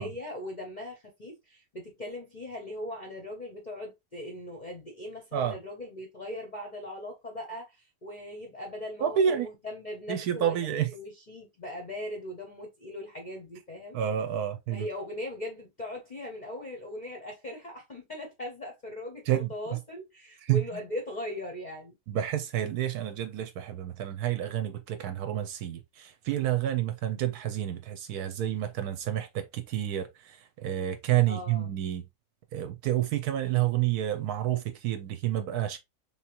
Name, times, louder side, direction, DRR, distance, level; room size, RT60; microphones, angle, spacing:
voice 1, 0.0-14.0 14.7-22.0 31.3-31.7, left 1 dB, 45° left, 0.6 m, -39 dB
voice 2, 9.0-9.5 10.1-10.9 13.9-14.9 19.3-19.8 20.4-20.8 22.1-32.1 32.5-35.8, right 11 dB, 70° right, 1.0 m, -29 dB
3.5 x 3.1 x 2.8 m
omnidirectional pair, 1.9 m